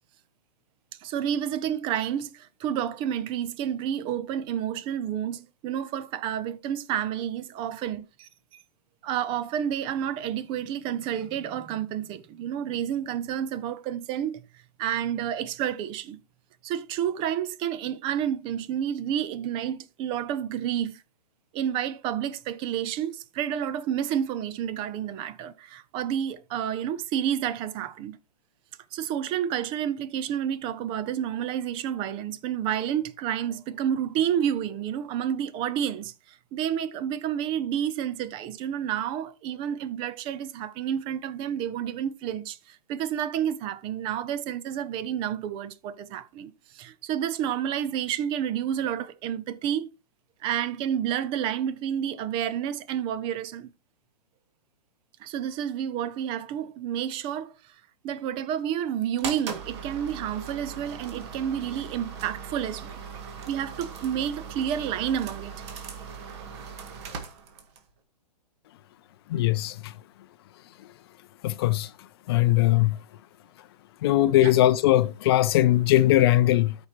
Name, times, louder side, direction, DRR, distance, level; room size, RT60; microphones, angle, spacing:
voice 1, 1.0-8.6 9.0-14.4 14.8-16.2 16.6-21.0 21.5-28.2 28.9-49.9 50.4-53.7 55.2-57.7 58.0-63.0 63.5-65.6 74.4-74.5, right 9 dB, 25° right, 0.6 m, -30 dB
sound 1, 59.2-67.9, right 6 dB, 40° right, 1.8 m, -39 dB
voice 2, 69.3-69.9 71.4-71.9 72.3-73.0 74.0-76.7, left 14 dB, 40° left, 0.6 m, -20 dB
13.0 x 5.2 x 3.0 m
figure-of-eight pair, 120°, 21 cm